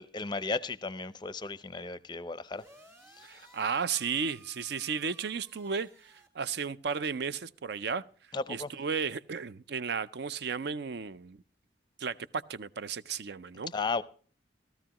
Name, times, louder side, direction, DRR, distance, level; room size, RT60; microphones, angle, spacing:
voice 1, 0.0-2.6 3.1-3.5 8.3-8.7 13.7-14.0, left 4 dB, 25° left, 0.5 m, -35 dB
sound 1, 2.5-6.3, right 2 dB, 15° right, 1.8 m, -58 dB
voice 2, 3.2-8.0 8.5-11.4 12.0-13.7, right 6 dB, 60° right, 0.5 m, -34 dB
16.0 x 13.5 x 2.9 m
head